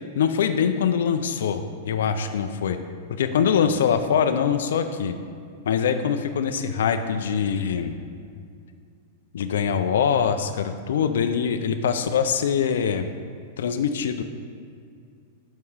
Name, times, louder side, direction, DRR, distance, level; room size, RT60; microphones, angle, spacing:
voice 1, 0.1-2.8 3.1-5.2 5.7-7.9 9.3-13.1 13.6-14.2, left 7 dB, 80° left, 8 dB, 0.4 m, -23 dB
6.5 x 4.7 x 5.6 m, 2.3 s
hypercardioid pair, 125°, 0 cm